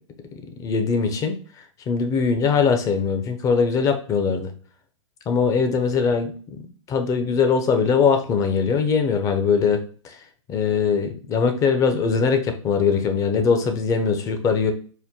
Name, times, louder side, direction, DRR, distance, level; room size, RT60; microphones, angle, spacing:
voice 1, 0.6-1.3 1.9-4.5 5.3-6.6 6.9-10.2 10.5-14.7, left 5 dB, 20° left, 6 dB, 0.5 m, -21 dB
4.4 x 2.1 x 3.6 m, 0.41 s
hypercardioid pair, 125°, 17 cm